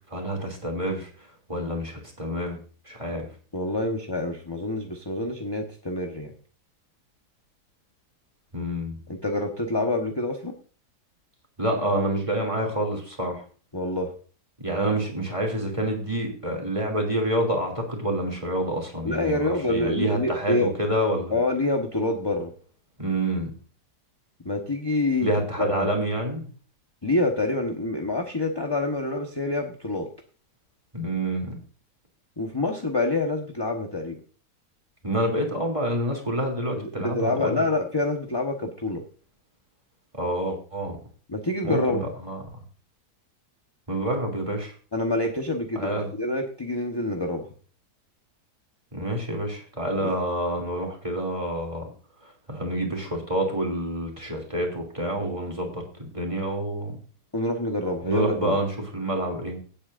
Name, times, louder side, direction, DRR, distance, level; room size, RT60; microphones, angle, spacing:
voice 1, 0.1-1.1 1.5-2.6 2.9-3.2 8.5-9.0 11.6-13.4 14.6-21.3 23.0-23.5 25.2-26.4 30.9-31.6 35.0-37.7 40.1-41.0 41.6-42.4 43.9-44.7 45.7-46.1 48.9-51.9 52.5-56.9 58.0-59.7, right 1 dB, 20° right, 0 dB, 3.0 m, -28 dB
voice 2, 3.5-6.3 9.1-10.6 13.7-14.1 19.0-20.7 21.3-22.5 24.4-25.3 25.6-25.9 27.0-30.1 32.4-34.2 36.8-39.0 41.3-42.1 44.9-47.5 50.0-50.1 57.3-58.6, left 2 dB, 15° left, 2 dB, 1.2 m, -27 dB
17.0 x 8.6 x 2.6 m, 0.39 s
omnidirectional pair, 1.8 m